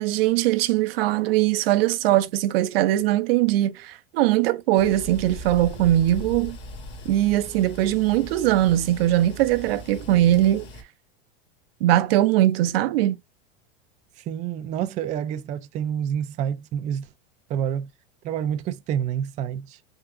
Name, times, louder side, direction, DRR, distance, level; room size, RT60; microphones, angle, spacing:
voice 1, 0.0-6.6 7.1-10.7 11.8-13.2, right 14 dB, 75° right, 0.6 m, -21 dB
sound 1, 4.7-10.8, equal, 40° left, 1.1 m, -39 dB
voice 2, 14.2-17.1 17.5-17.9 18.2-19.8, right 9 dB, 25° right, 0.3 m, -28 dB
3.6 x 2.8 x 2.4 m
supercardioid pair, 125°, 30 cm